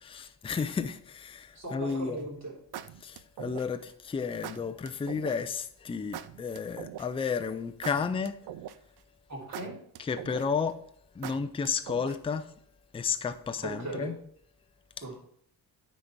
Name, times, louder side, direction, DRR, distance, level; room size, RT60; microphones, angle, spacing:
voice 1, 0.0-2.2 3.0-8.4 10.0-10.8 11.2-12.5 12.9-14.2, left 5 dB, 15° left, 0.4 m, -32 dB
voice 2, 1.5-2.5 9.3-9.7 13.6-14.1 15.0-15.2, right 2 dB, 40° right, 3.2 m, -38 dB
sound 1, 1.9-2.2 2.7-3.9 4.4-5.4 6.1-7.3 7.8-9.0 9.5-10.7 11.2-12.4, right 11 dB, 60° right, 0.5 m, -42 dB
9.5 x 4.1 x 4.5 m
cardioid pair, 125°, 43 cm